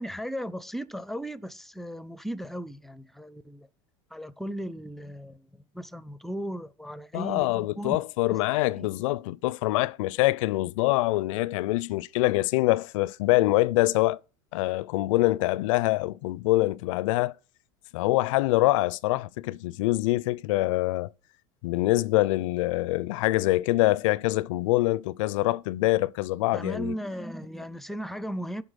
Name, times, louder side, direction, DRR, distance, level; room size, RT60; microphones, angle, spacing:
voice 1, 0.0-3.7 4.1-5.5 5.7-8.0 8.3-8.4 8.7-8.9 26.5-28.6, equal, ahead, 0.5 m, -36 dB
voice 2, 7.1-14.2 14.5-17.3 17.9-21.1 21.6-26.9, left 18 dB, 75° left, 0.4 m, -25 dB
11.0 x 3.9 x 6.3 m
hypercardioid pair, 95°, 17 cm